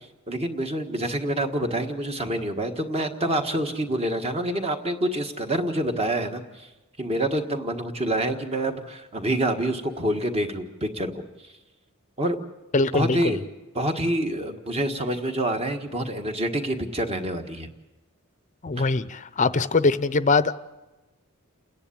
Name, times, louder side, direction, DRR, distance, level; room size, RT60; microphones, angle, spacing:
voice 1, 0.3-6.7 7.0-11.2 12.2-12.4 12.9-13.5 13.7-17.7 18.8-18.9, right 1 dB, 30° right, 5 dB, 1.6 m, -27 dB
voice 2, 12.7-13.4 18.6-20.5, left 3 dB, 35° left, 15 dB, 0.7 m, -22 dB
29.0 x 10.5 x 8.6 m, 1.1 s
head